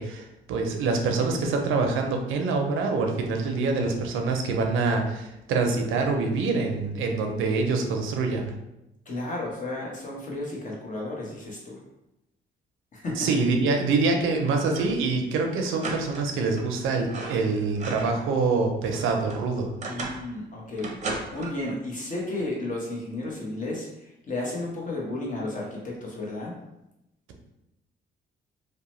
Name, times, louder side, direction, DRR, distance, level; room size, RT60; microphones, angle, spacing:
voice 1, 0.0-8.5 13.2-19.7, right 3 dB, 85° right, 3 dB, 0.5 m, -25 dB
voice 2, 9.0-11.8 12.9-13.3 19.9-20.9 21.3-26.6, left 2 dB, 40° left, -3 dB, 1.0 m, -33 dB
sound 1, 14.7-15.1 15.3-15.4 15.8-16.7 17.0-18.3 18.7-20.3 20.8-21.8, right 3 dB, 35° right, 0.6 m, -36 dB
2.8 x 2.1 x 3.0 m, 0.89 s
cardioid pair, 90°, 20 cm